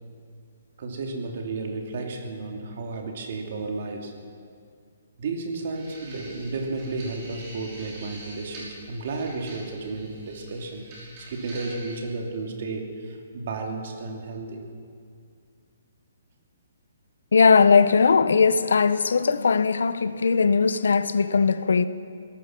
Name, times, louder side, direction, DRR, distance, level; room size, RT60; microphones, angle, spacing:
voice 1, 0.8-4.1 5.2-10.8 11.1-14.6, right 3 dB, 45° right, 2.9 m, -33 dB
sound 1, 5.8-12.0, right 1 dB, 25° right, 5.7 m, -45 dB
voice 2, 17.3-21.9, left 5 dB, 80° left, 0.9 m, -19 dB
24.0 x 18.0 x 6.1 m
hypercardioid pair, 175°, 0 cm